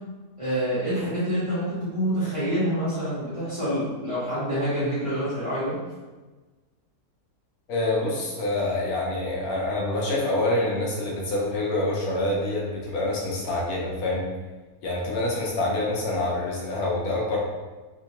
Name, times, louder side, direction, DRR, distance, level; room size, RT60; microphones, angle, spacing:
voice 1, 0.4-5.8, equal, 20° right, -12 dB, 1.4 m, -27 dB
voice 2, 7.7-14.3 14.8-17.4, left 2 dB, 75° left, -3 dB, 1.2 m, -26 dB
3.3 x 2.7 x 2.9 m, 1.3 s
omnidirectional pair, 1.6 m